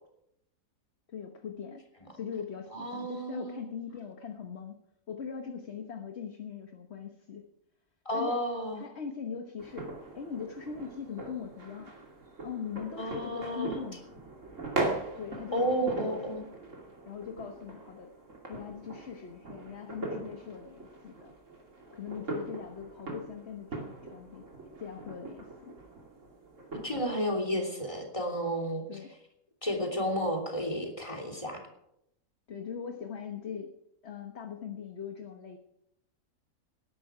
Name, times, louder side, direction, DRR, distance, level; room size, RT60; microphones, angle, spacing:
voice 1, 1.1-1.8 2.1-4.8 5.1-7.4 8.1-8.4 8.8-11.9 12.4-14.1 15.1-16.5 17.1-18.1 18.5-21.3 21.9-24.5 24.8-25.7 28.9-29.1 32.5-33.7 34.0-35.6, left 7 dB, 45° left, 4 dB, 1.4 m, -41 dB
voice 2, 2.7-3.6 8.0-8.9 13.0-13.8 15.5-16.4 26.7-28.8 29.6-31.6, equal, 20° left, 1 dB, 3.1 m, -32 dB
sound 1, 9.6-27.0, right 2 dB, 50° right, 2.9 m, -40 dB
19.0 x 11.0 x 5.0 m, 0.78 s
omnidirectional pair, 1.6 m